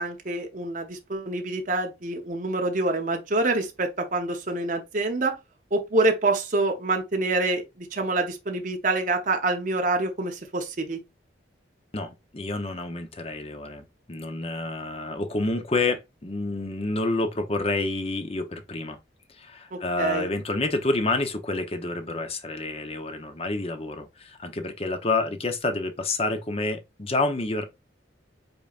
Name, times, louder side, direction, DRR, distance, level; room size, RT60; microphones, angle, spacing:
voice 1, 0.0-5.4 5.7-11.0 19.7-20.3, right 2 dB, 45° right, 0.8 m, -26 dB
voice 2, 11.9-19.0 19.3-27.6, left 2 dB, 30° left, 0.8 m, -28 dB
5.3 x 4.1 x 2.4 m
head